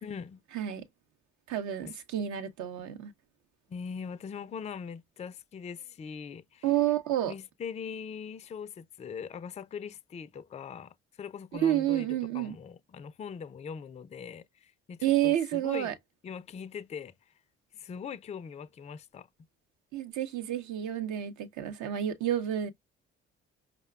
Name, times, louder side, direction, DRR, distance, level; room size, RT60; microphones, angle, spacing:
voice 1, 0.0-0.4 1.8-1.9 3.7-6.7 7.3-16.0 16.2-17.1 17.7-19.3, left 6 dB, 20° left, 0.4 m, -41 dB
voice 2, 0.5-0.8 1.5-3.1 6.6-7.3 11.5-12.6 15.0-15.9 19.9-22.7, right 12 dB, 65° right, 0.7 m, -29 dB
4.9 x 2.1 x 2.2 m
hypercardioid pair, 50°, 31 cm